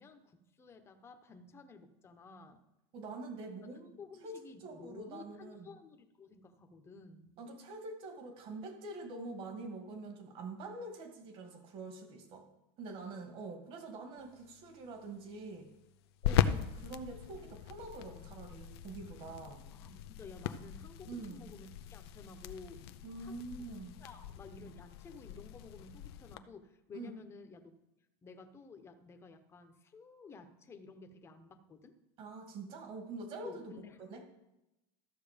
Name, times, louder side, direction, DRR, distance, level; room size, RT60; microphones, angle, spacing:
voice 1, 0.0-2.7 4.0-7.4 16.4-16.6 19.7-22.9 23.2-23.3 24.0-27.7 28.2-32.0 33.4-34.0, left 4 dB, 20° left, 6 dB, 1.0 m, -53 dB
voice 2, 2.9-4.0 4.2-5.7 7.4-12.5 12.8-15.7 16.2-19.7 21.1-21.5 23.0-23.9 26.9-27.1 32.2-33.7 34.0-34.2, right 3 dB, 45° right, 5 dB, 2.0 m, -45 dB
sound 1, 14.2-26.4, left 10 dB, 85° left, 0.6 m, -39 dB
13.5 x 6.6 x 5.1 m, 0.92 s
supercardioid pair, 145°, 13 cm